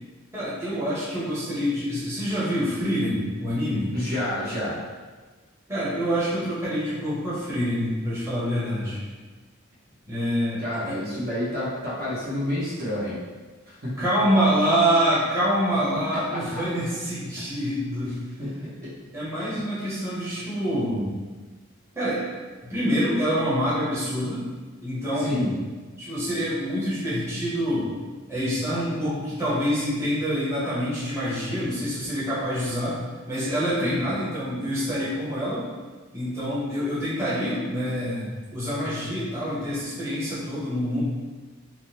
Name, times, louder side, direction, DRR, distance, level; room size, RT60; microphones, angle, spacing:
voice 1, 0.3-3.9 5.7-9.0 10.1-10.6 10.9-11.0 14.0-18.1 19.1-21.1 21.9-22.2 22.6-24.5 24.8-25.6 26.0-27.9 28.3-32.9 33.3-35.7 36.1-41.0, equal, 15° right, -10 dB, 0.9 m, -26 dB
voice 2, 3.9-4.8 10.6-13.2 13.7-14.0 16.3-16.4 18.4-18.9 25.2-25.5 33.8-34.2, left 1 dB, 45° right, -8 dB, 0.9 m, -29 dB
3.5 x 2.1 x 2.7 m, 1.3 s
head